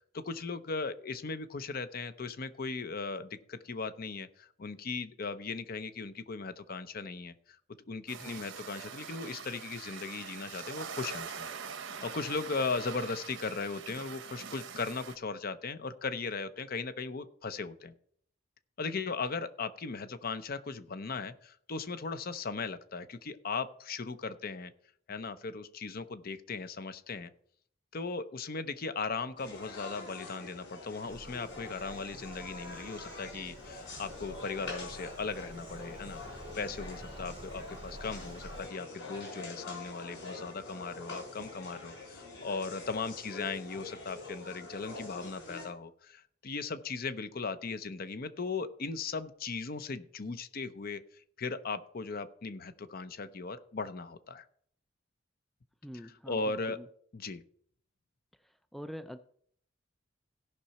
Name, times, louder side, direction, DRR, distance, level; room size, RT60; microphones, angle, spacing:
voice 1, 0.1-7.3 7.9-11.5 12.0-17.9 18.8-24.7 25.1-27.3 27.9-51.0 51.4-54.4 56.0-56.8 57.1-57.4, left 4 dB, 50° left, 12 dB, 0.7 m, -38 dB
sound 1, 8.1-15.2, right 6 dB, 70° right, 0.9 m, -44 dB
sound 2, 29.4-45.7, left 3 dB, 70° left, 4.5 m, -45 dB
Bird vocalization bird call bird song, 31.1-38.7, right 2 dB, 25° right, 0.7 m, -49 dB
voice 2, 55.8-56.4 56.7-56.9 58.7-59.2, equal, ahead, 10 dB, 0.3 m, -44 dB
16.5 x 5.7 x 4.2 m, 0.63 s
head